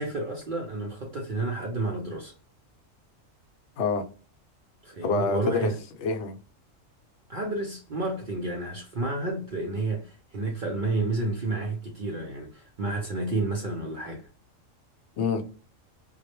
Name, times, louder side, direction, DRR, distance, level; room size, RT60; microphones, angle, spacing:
voice 1, 0.0-2.3 4.8-5.8 7.3-14.3, right 2 dB, 60° right, 0.5 m, -30 dB
voice 2, 5.0-5.7 6.0-6.4 15.2-15.4, left 4 dB, 65° left, 0.8 m, -26 dB
2.3 x 2.0 x 2.9 m
omnidirectional pair, 1.3 m